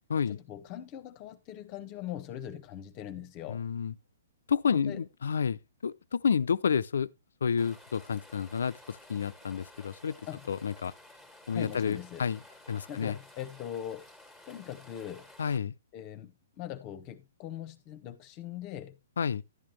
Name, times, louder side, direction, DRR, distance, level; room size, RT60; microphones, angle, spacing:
voice 1, 0.3-3.6 4.7-5.0 10.3-10.4 11.5-12.3 12.9-14.1 14.5-15.3 15.9-19.0, left 11 dB, 30° left, 0.9 m, -41 dB
voice 2, 3.5-3.9 4.5-7.1 7.4-10.2 10.5-10.9 11.5-12.4 12.7-13.2 15.4-15.7 19.2-19.4, left 6 dB, 80° left, 0.5 m, -30 dB
Rain, 7.6-15.6, left 1 dB, 5° right, 1.6 m, -54 dB
11.0 x 8.8 x 3.1 m
hypercardioid pair, 150°, 0 cm